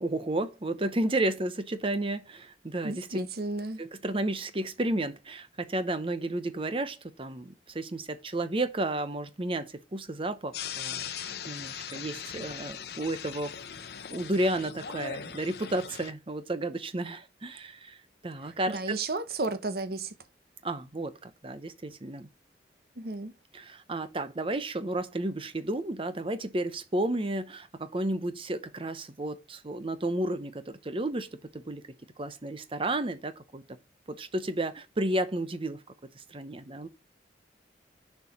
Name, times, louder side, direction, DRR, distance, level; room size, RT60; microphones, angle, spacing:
voice 1, 0.0-3.2 3.8-13.5 14.1-18.0 18.2-18.9 20.6-22.3 23.5-31.8 32.2-33.6 34.1-35.8 36.2-36.9, right 1 dB, 30° right, 0.8 m, -32 dB
voice 2, 2.8-3.8 18.7-20.1 23.0-23.3, right 2 dB, 60° right, 0.9 m, -33 dB
sound 1, 10.5-16.1, left 8 dB, 65° left, 0.7 m, -39 dB
6.8 x 4.6 x 6.0 m
head